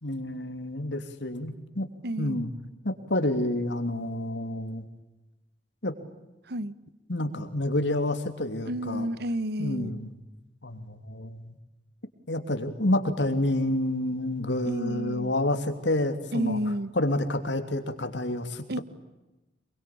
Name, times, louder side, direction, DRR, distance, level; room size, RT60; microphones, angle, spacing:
voice 1, 0.0-1.9 2.2-2.5 2.8-4.8 5.8-5.9 7.1-9.1 9.6-10.1 10.6-11.6 12.3-16.6 17.0-18.8, left 1 dB, 85° left, 8 dB, 3.1 m, -29 dB
voice 2, 2.0-2.4 6.4-6.7 8.7-9.9 14.6-15.3 16.3-16.9 18.7-18.8, right 1 dB, 65° right, 16 dB, 1.2 m, -31 dB
26.5 x 23.5 x 8.7 m, 1.0 s
head